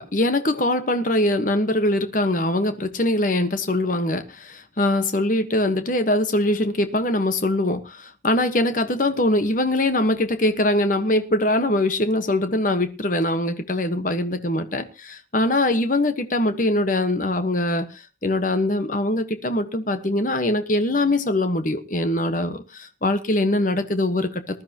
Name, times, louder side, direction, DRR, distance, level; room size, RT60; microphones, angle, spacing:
voice 1, 0.1-24.6, left 1 dB, 45° left, 9 dB, 1.3 m, -22 dB
19.5 x 12.5 x 3.0 m, 0.30 s
head